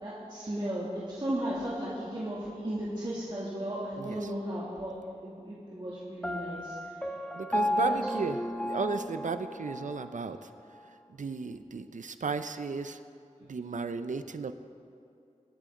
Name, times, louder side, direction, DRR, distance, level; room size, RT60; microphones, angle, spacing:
voice 1, 0.0-4.9 5.2-6.7 7.5-8.0, right 1 dB, 35° right, -8 dB, 2.4 m, -35 dB
Piano, 6.2-10.1, left 1 dB, 10° left, 0.6 m, -33 dB
voice 2, 7.3-10.5 11.2-13.0 13.5-14.5, right 4 dB, 75° right, 10 dB, 0.5 m, -34 dB
23.0 x 8.4 x 3.8 m, 2.6 s
wide cardioid pair, 55°, 13 cm